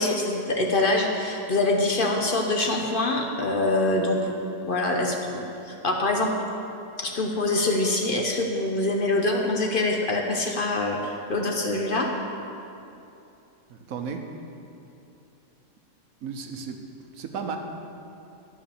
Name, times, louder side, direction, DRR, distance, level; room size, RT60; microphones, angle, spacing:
voice 1, 0.0-4.3 4.7-6.3 7.0-12.1, left 2 dB, 45° left, 1 dB, 0.9 m, -25 dB
voice 2, 13.7-14.2 16.2-16.8 17.1-17.6, right 6 dB, 80° right, 4 dB, 1.3 m, -34 dB
12.0 x 4.9 x 7.1 m, 2.7 s
omnidirectional pair, 1.5 m